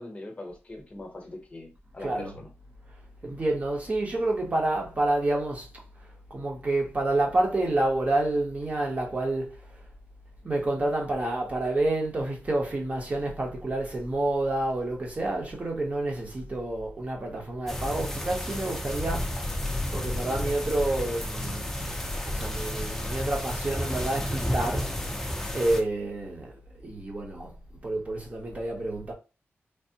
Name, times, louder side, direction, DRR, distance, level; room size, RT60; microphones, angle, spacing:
voice 1, 0.0-2.5, left 2 dB, 30° left, 0.8 m, -42 dB
voice 2, 2.0-2.3 3.2-5.7 6.3-9.8 10.4-19.6 19.9-21.7 22.3-24.9 25.5-27.6 27.8-29.1, right 2 dB, 35° right, 0.9 m, -29 dB
sound 1, 17.7-25.8, left 1 dB, 10° left, 0.5 m, -31 dB
3.3 x 2.0 x 2.7 m
wide cardioid pair, 130°, 4 cm